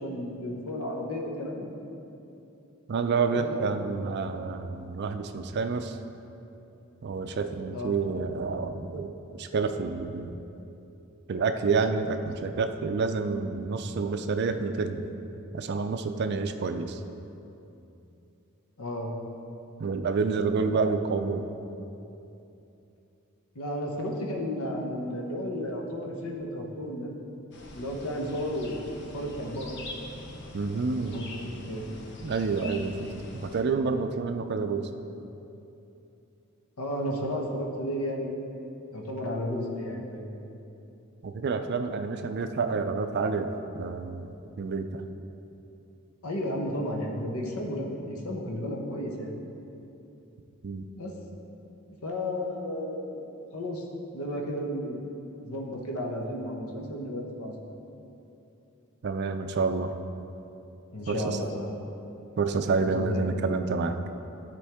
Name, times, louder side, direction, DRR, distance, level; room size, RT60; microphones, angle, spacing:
voice 1, 0.0-1.7 3.3-3.8 7.7-8.0 18.8-19.1 23.5-27.1 27.7-28.9 29.1-29.7 31.1-31.9 36.8-38.4 38.9-40.3 46.2-49.3 50.9-51.1 52.0-53.2 53.5-53.8 54.1-55.1 55.4-57.5 60.9-61.7 62.8-63.3, equal, 85° left, 0 dB, 1.0 m, -33 dB
voice 2, 2.9-6.0 7.0-10.3 11.3-15.0 15.5-17.0 19.8-21.4 30.5-31.2 32.2-33.1 33.4-34.9 41.2-43.5 43.7-44.3 44.6-45.0 50.6-50.9 59.0-59.9 61.1-61.4 62.4-63.9, right 4 dB, 50° right, 7 dB, 0.4 m, -28 dB
sound 1, 27.5-33.6, left 2 dB, 55° left, 0.8 m, -43 dB
13.0 x 4.5 x 3.5 m, 2.8 s
head